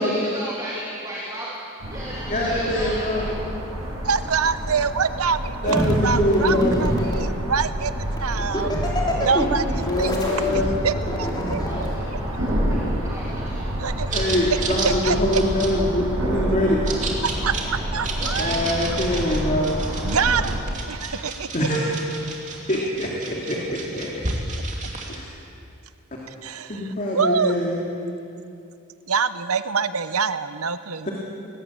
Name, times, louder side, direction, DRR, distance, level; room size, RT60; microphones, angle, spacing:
voice 1, 0.0-1.5 1.9-3.3 10.2-10.3 11.6-14.3 17.1-17.7 21.7-22.5, right 1 dB, 15° right, -5 dB, 3.1 m, -37 dB
sound 1, 1.8-20.6, equal, 70° right, 7.1 m, -28 dB
voice 2, 2.3-3.3 5.6-6.8 9.9-10.7 14.1-16.8 18.4-19.8 21.5-21.9 22.7-24.2 25.1-25.2 26.7-27.8 31.1-31.2, left 1 dB, 35° left, -3 dB, 2.9 m, -23 dB
voice 3, 4.0-8.7 9.1-10.2 10.8-11.9 13.8-14.1 14.5-15.2 17.4-18.8 20.0-20.6 20.9-21.5 26.3-27.5 29.1-31.1, right 6 dB, 85° right, 12 dB, 0.9 m, -25 dB
sound 2, 5.7-7.2 8.2-11.9 12.7-12.9, equal, 20° left, 3.7 m, -26 dB
sound 3, 14.1-25.2, right 3 dB, 35° right, 2.9 m, -32 dB
22.0 x 19.0 x 8.8 m, 2.6 s
head